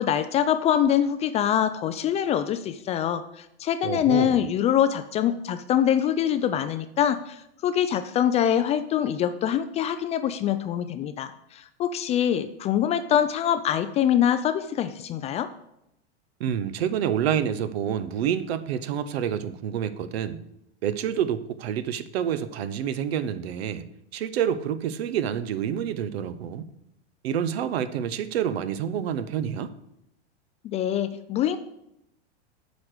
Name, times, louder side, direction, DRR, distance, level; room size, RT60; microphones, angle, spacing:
voice 1, 0.0-15.5 30.6-31.6, left 10 dB, 20° left, 11 dB, 0.3 m, -24 dB
voice 2, 3.8-4.5 16.4-20.4 20.8-23.9 24.1-26.6 27.2-29.7, right 9 dB, 70° right, 13 dB, 0.9 m, -28 dB
8.4 x 5.1 x 6.4 m, 0.81 s
hypercardioid pair, 120°, 33 cm